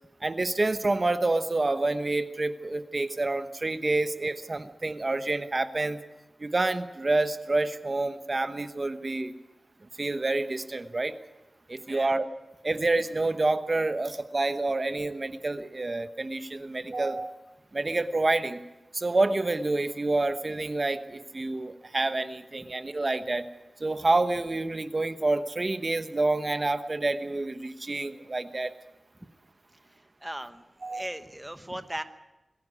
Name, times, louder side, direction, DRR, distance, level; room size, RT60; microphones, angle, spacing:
voice 1, 0.2-6.0 6.4-9.3 10.0-11.1 11.7-12.2 12.6-17.4 17.7-18.6 18.9-23.4 23.8-28.7 30.8-31.1, right 2 dB, 35° right, 10 dB, 1.0 m, -28 dB
voice 2, 29.8-30.6 30.9-32.0, right 1 dB, 10° right, 9 dB, 1.0 m, -38 dB
22.0 x 15.0 x 9.8 m, 1.0 s
wide cardioid pair, 110°, 0 cm